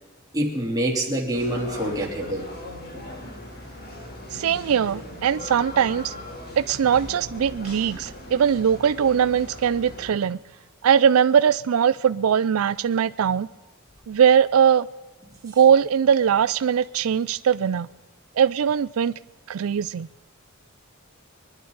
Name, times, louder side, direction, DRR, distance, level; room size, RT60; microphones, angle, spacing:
voice 1, 0.3-2.4, right 1 dB, 20° right, -2 dB, 3.2 m, -26 dB
sound 1, 1.3-10.1, left 1 dB, 50° left, 2.9 m, -39 dB
voice 2, 4.3-6.1 6.6-10.4 10.8-13.5 14.1-14.9 15.4-17.9 18.4-19.1 19.5-20.1, right 8 dB, 85° right, 16 dB, 0.4 m, -20 dB
24.5 x 11.5 x 4.0 m, 1.2 s
head